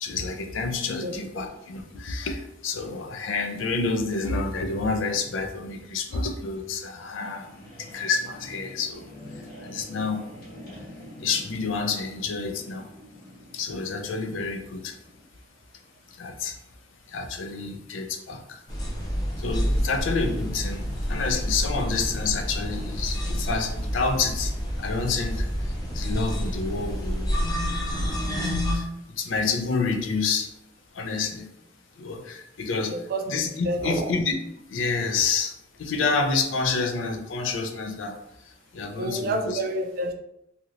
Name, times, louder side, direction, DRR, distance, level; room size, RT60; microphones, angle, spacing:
voice 1, 0.0-7.5 7.8-9.1 9.6-10.2 11.2-12.9 13.5-14.9 16.2-16.5 17.1-18.6 19.4-24.5 24.8-25.5 25.9-27.3 27.6-28.9 29.2-30.5 30.9-31.5 32.0-32.9 33.3-34.4 34.7-35.5 35.8-38.2 38.7-39.6, left 4 dB, 80° left, 5 dB, 0.4 m, -28 dB
sound 1, 5.6-15.3, left 1 dB, 55° left, 0.9 m, -46 dB
sound 2, 18.7-28.8, equal, 20° left, 0.6 m, -28 dB
voice 2, 32.9-33.3 33.6-34.1 39.0-40.1, right 1 dB, 50° right, 5 dB, 0.4 m, -28 dB
3.0 x 2.7 x 2.5 m, 0.81 s
head